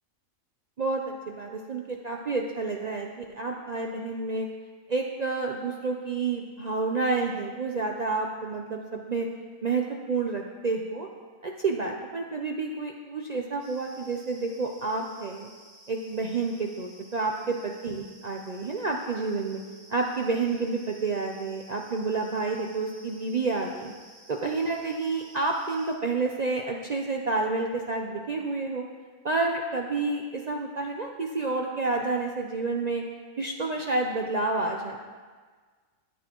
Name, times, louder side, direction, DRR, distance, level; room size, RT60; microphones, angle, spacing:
voice 1, 0.8-4.5 4.9-9.3 9.6-11.1 11.4-15.5 15.9-19.6 19.9-23.9 24.3-28.8 29.2-33.0 33.4-35.1, right 3 dB, 75° right, 1 dB, 0.3 m, -29 dB
sound 1, 13.6-25.9, right 1 dB, 80° left, 4.2 m, -53 dB
12.5 x 9.4 x 3.0 m, 1.5 s
omnidirectional pair, 1.6 m